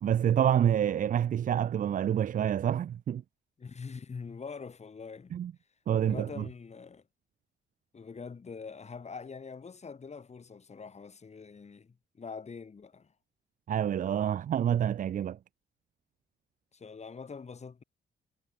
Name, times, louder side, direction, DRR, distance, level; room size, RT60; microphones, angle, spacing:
voice 1, 0.0-3.2 5.3-5.5 5.9-6.5 13.7-15.4, right 9 dB, 40° right, 0.4 m, -27 dB
voice 2, 3.6-5.3 6.0-7.0 7.9-13.1 16.7-17.8, left 5 dB, 35° left, 3.1 m, -44 dB
cardioid pair, 90°, 20 cm